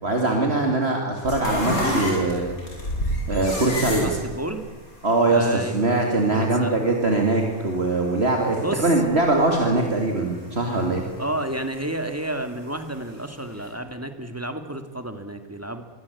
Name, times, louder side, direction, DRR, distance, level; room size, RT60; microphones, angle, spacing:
voice 1, 0.0-2.6 3.3-4.1 5.0-11.0, right 2 dB, 45° right, 2 dB, 3.0 m, -22 dB
sound 1, 1.2-9.7 10.0-11.6 12.1-13.3 13.6-13.7, equal, 75° left, 8.0 m, -30 dB
voice 2, 4.0-4.6 5.3-6.0 6.3-6.9 8.5-8.9 11.2-15.8, right 1 dB, 10° right, 8 dB, 2.2 m, -31 dB
25.5 x 23.5 x 8.5 m, 1.3 s
omnidirectional pair, 1.5 m